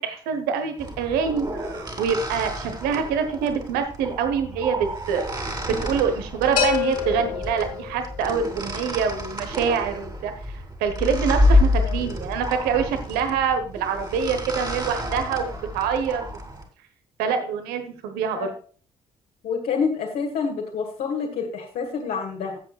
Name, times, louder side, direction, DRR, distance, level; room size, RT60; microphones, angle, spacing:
voice 1, 0.0-16.2 17.2-18.5, right 6 dB, 65° right, 8 dB, 1.2 m, -25 dB
sound 1, 0.8-16.6, left 1 dB, 25° right, 2.7 m, -28 dB
sound 2, 6.6-8.4, left 9 dB, 75° left, 1.5 m, -27 dB
voice 2, 11.4-11.9 18.3-18.5 19.4-22.6, left 5 dB, 55° left, 0 dB, 1.8 m, -28 dB
16.0 x 7.8 x 2.4 m, 0.41 s
figure-of-eight pair, 40°, 18 cm